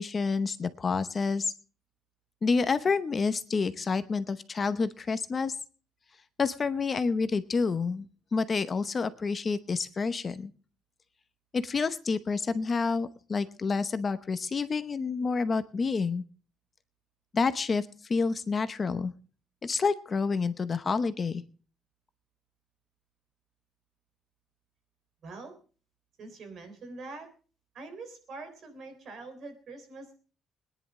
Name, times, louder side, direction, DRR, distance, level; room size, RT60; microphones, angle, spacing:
voice 1, 0.0-1.5 2.4-5.5 6.4-10.5 11.5-16.2 17.3-19.1 19.6-21.4, left 4 dB, 25° left, 12 dB, 0.8 m, -28 dB
voice 2, 25.2-25.5 26.2-27.3 27.7-30.2, right 3 dB, 45° right, 6 dB, 3.6 m, -44 dB
21.5 x 10.5 x 3.6 m, 0.38 s
cardioid pair, 160°, 0 cm